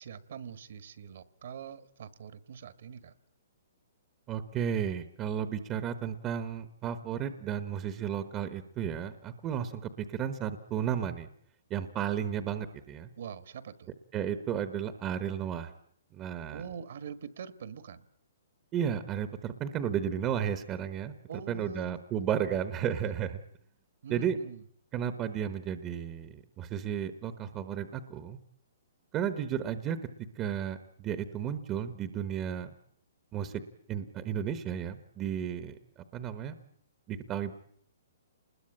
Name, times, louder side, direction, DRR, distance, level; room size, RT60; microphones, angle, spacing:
voice 1, 0.0-3.1 13.1-13.9 16.5-18.0 21.3-22.0 22.5-22.9 24.0-24.6, right 7 dB, 55° right, 15 dB, 1.4 m, -44 dB
voice 2, 4.3-11.3 11.7-13.1 14.1-15.7 16.1-16.6 18.7-21.1 21.5-23.4 24.1-24.4 24.9-28.4 29.1-30.0 30.4-32.7 33.3-33.5 33.9-35.8 36.1-36.6 37.1-37.5, right 9 dB, 15° right, 12 dB, 1.0 m, -33 dB
28.0 x 21.0 x 8.7 m, 0.64 s
hypercardioid pair, 170°, 0 cm